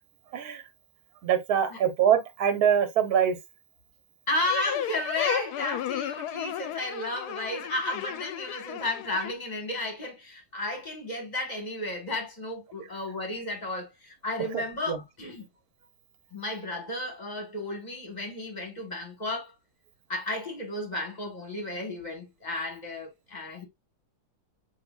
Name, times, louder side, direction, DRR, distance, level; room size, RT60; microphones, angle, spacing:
voice 1, 0.3-0.6 1.2-3.4 14.9-15.0, right 9 dB, 65° right, 1.4 m, -23 dB
voice 2, 4.3-15.4 16.3-19.5 20.1-23.6, left 1 dB, 25° left, 1.5 m, -33 dB
sound 1, 4.5-9.3, left 10 dB, 75° left, 1.1 m, -33 dB
7.6 x 3.0 x 2.3 m
omnidirectional pair, 1.7 m